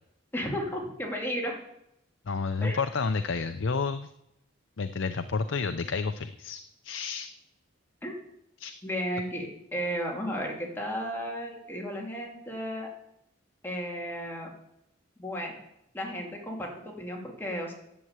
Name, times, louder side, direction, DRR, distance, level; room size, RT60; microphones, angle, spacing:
voice 1, 0.3-1.6 2.6-2.8 8.0-8.2 8.8-12.9 13.6-14.5 15.2-15.6 15.9-17.7, equal, 10° left, -1 dB, 2.6 m, -34 dB
voice 2, 2.3-4.1 4.8-7.3 8.6-8.7, left 4 dB, 75° left, 10 dB, 0.6 m, -30 dB
10.5 x 7.8 x 8.1 m, 0.82 s
head